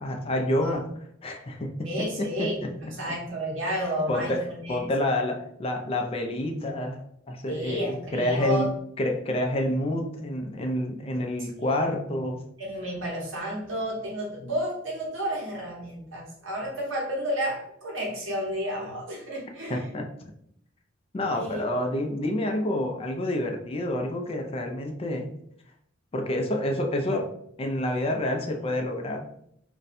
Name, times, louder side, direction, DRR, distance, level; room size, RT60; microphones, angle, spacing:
voice 1, 0.0-0.8 1.2-2.7 4.1-7.0 7.3-8.7 9.0-12.4 19.7-20.1 21.1-25.3 26.1-27.3 27.6-29.3, left 1 dB, 30° left, 3 dB, 0.4 m, -28 dB
voice 2, 1.8-4.8 7.5-8.7 11.6-11.8 12.6-19.9 21.4-21.6, equal, 75° right, -2 dB, 1.1 m, -31 dB
2.6 x 2.2 x 4.0 m, 0.70 s
head